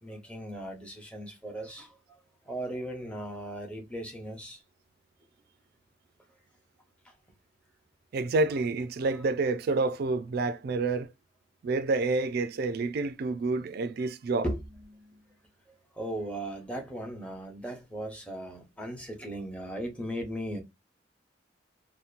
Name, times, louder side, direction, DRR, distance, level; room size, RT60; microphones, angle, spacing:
voice 1, 0.0-2.2 2.5-4.6 7.0-7.1 14.4-15.2 15.9-20.6, right 1 dB, 5° left, 0.8 m, -37 dB
voice 2, 8.1-11.1 11.6-14.5, right 3 dB, 55° right, 0.3 m, -28 dB
2.8 x 2.1 x 2.4 m
head